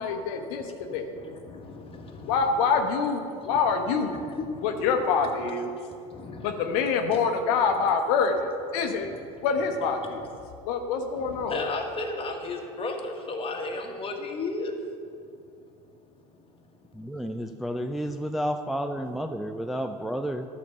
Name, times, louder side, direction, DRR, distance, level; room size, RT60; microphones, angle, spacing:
voice 1, 0.0-1.1 2.3-4.2 4.6-5.8 6.4-9.1 9.4-10.4 10.6-11.7, left 5 dB, 65° left, 5 dB, 0.9 m, -26 dB
voice 2, 0.6-2.3 4.3-4.9 6.1-6.6 9.0-9.1 11.2-14.7 17.4-17.5, left 3 dB, 30° left, 2 dB, 1.5 m, -35 dB
voice 3, 17.0-20.4, equal, ahead, 5 dB, 0.4 m, -31 dB
12.0 x 4.4 x 6.6 m, 2.4 s
hypercardioid pair, 75°, 19 cm